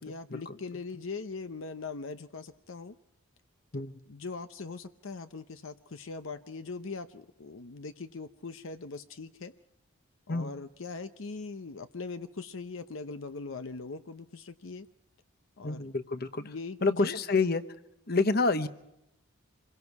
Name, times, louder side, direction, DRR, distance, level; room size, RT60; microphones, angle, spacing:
voice 1, 0.0-3.0 4.1-9.5 10.3-14.9 15.6-15.9 16.4-17.1, left 4 dB, 70° left, 10 dB, 0.7 m, -41 dB
voice 2, 15.6-16.5 16.8-17.7 18.1-18.7, left 3 dB, 45° left, 12 dB, 1.0 m, -28 dB
27.0 x 22.5 x 4.7 m, 0.84 s
head